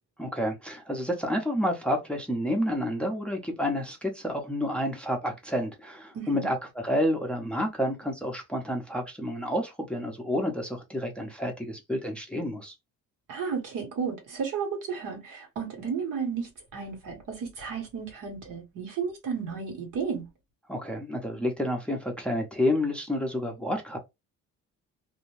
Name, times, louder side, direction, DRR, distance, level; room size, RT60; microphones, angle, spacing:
voice 1, 0.2-6.6 6.8-12.7 20.7-24.0, left 1 dB, 5° left, 0.5 m, -29 dB
voice 2, 6.1-6.5 13.3-20.3, right 6 dB, 80° right, 1.3 m, -33 dB
2.5 x 2.1 x 3.1 m
cardioid pair, 155°, 32 cm